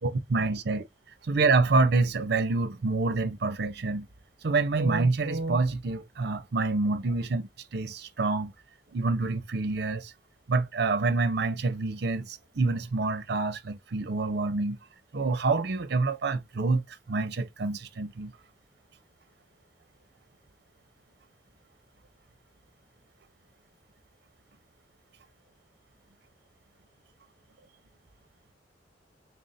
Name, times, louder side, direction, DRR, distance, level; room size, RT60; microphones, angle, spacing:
voice 1, 0.0-0.8 1.3-4.1 4.4-8.5 8.9-10.1 10.5-14.8 15.1-16.8 17.1-18.3, right 3 dB, 60° right, 0.6 m, -27 dB
3.5 x 2.5 x 4.1 m
head